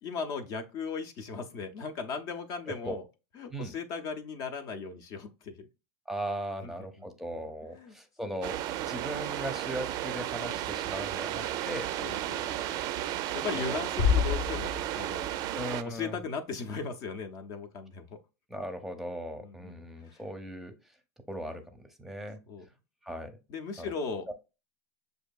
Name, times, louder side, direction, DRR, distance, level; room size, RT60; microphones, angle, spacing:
voice 1, 0.0-3.0 3.4-5.7 6.6-6.7 7.7-7.9 12.0-12.8 13.3-15.3 15.8-18.2 19.4-19.8 20.0-20.2 22.5-22.7 23.5-24.3, left 5 dB, 50° left, 0.6 m, -37 dB
voice 2, 6.1-11.9 13.5-13.8 15.5-16.2 18.5-20.7 21.3-22.4 23.0-23.3 23.8-23.9 24.3-24.4, equal, 5° right, 0.7 m, -38 dB
sound 1, 8.4-15.8, right 13 dB, 50° right, 0.4 m, -34 dB
sound 2, 14.0-15.4, left 7 dB, 80° left, 0.9 m, -28 dB
6.3 x 2.7 x 2.2 m
supercardioid pair, 110°, 9 cm